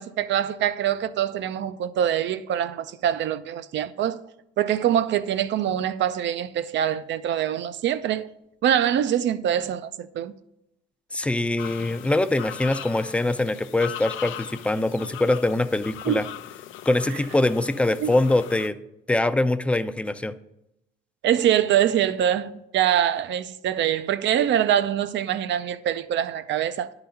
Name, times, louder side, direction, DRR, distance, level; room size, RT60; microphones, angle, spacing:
voice 1, 0.0-4.2 4.6-8.3 8.6-10.3 16.1-16.2 18.0-18.1 21.2-26.9, right 10 dB, 65° right, 0.5 m, -24 dB
voice 2, 11.1-16.2 16.9-18.8 19.1-20.4, left 2 dB, 5° left, 0.4 m, -23 dB
sound 1, 11.6-18.7, left 12 dB, 80° left, 0.4 m, -39 dB
10.5 x 3.9 x 5.7 m
cardioid pair, 90°, 20 cm